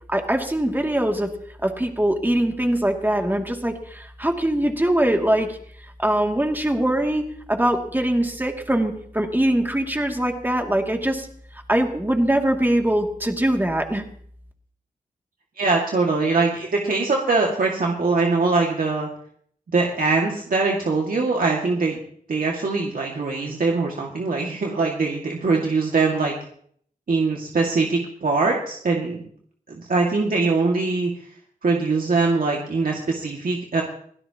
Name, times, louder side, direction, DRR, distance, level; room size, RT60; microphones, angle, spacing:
voice 1, 0.1-1.3 1.6-5.6 6.0-11.3 11.7-14.0, right 1 dB, 15° right, 2 dB, 2.6 m, -22 dB
voice 2, 15.6-19.1 19.7-22.0 22.3-26.4 27.1-29.3 29.7-31.1 31.6-33.8, right 3 dB, 70° right, -1 dB, 2.2 m, -22 dB
24.5 x 16.5 x 3.0 m, 0.62 s
wide cardioid pair, 70°, 15 cm